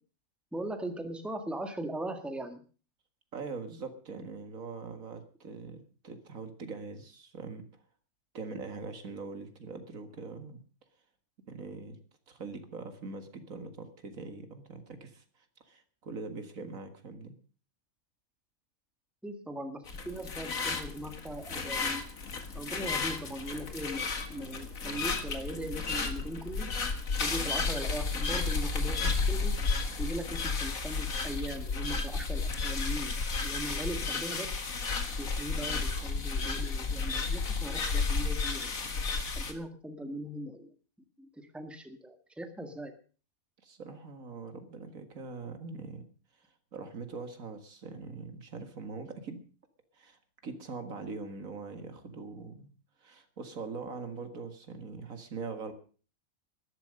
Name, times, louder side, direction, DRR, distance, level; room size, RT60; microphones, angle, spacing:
voice 1, 0.5-2.6 19.2-22.1 22.6-26.7 27.2-29.6 30.0-33.2 33.4-34.6 35.2-38.7 39.4-40.7 41.2-42.9, right 1 dB, ahead, 7 dB, 1.6 m, -39 dB
voice 2, 3.3-7.6 8.3-10.6 11.5-12.0 12.3-15.2 15.7-17.3 43.6-46.1 46.7-49.4 49.9-52.7 53.0-55.7, right 4 dB, 70° right, 8 dB, 2.2 m, -42 dB
sound 1, 19.9-39.5, left 4 dB, 70° left, 2.2 m, -32 dB
13.5 x 12.0 x 6.6 m, 0.40 s
omnidirectional pair, 1.5 m